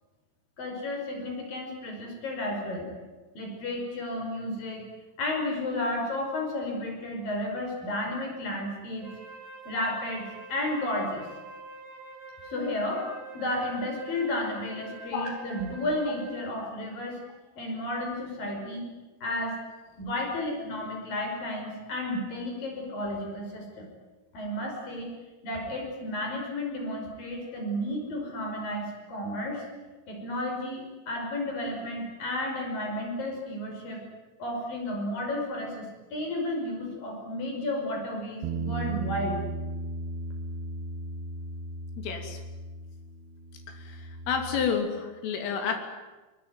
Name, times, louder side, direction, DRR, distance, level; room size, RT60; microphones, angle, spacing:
voice 1, 0.6-2.9 3.4-4.8 5.2-9.1 9.7-11.3 12.5-13.1 13.3-17.2 17.6-18.9 19.2-19.6 20.0-23.9 24.3-25.1 25.4-29.6 30.1-34.0 34.4-39.4, left 1 dB, 45° left, 1 dB, 6.9 m, -32 dB
Wind instrument woodwind instrument, 9.0-16.6, right 3 dB, 55° right, 5.3 m, -45 dB
Bass guitar, 38.4-44.7, right 2 dB, 70° right, 2.7 m, -36 dB
voice 2, 42.0-42.4 43.7-45.7, left 6 dB, 85° left, 4 dB, 5.6 m, -30 dB
23.5 x 21.5 x 9.6 m, 1.2 s
omnidirectional pair, 5.7 m